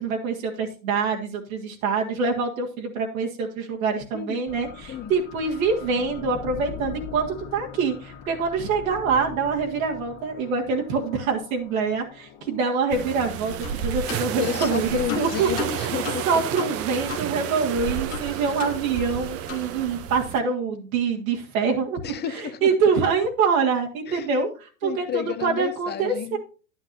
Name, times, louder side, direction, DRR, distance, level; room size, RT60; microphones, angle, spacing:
voice 1, 0.0-14.9 15.2-15.5 16.3-22.0 22.3-26.4, right 5 dB, 70° right, 1.9 m, -25 dB
sound 1, 4.5-16.4, left 7 dB, 50° left, 1.8 m, -42 dB
sound 2, 12.9-20.4, right 9 dB, 35° right, 0.7 m, -31 dB
sound 3, 13.6-13.8 14.1-17.3 17.6-17.7 18.1-19.2 19.5-19.7, left 10 dB, 65° left, 1.6 m, -35 dB
voice 2, 14.4-16.3 22.0-22.7 24.1-24.3 24.8-26.4, left 10 dB, 25° left, 0.9 m, -31 dB
10.5 x 9.7 x 2.7 m
hypercardioid pair, 95°, 43 cm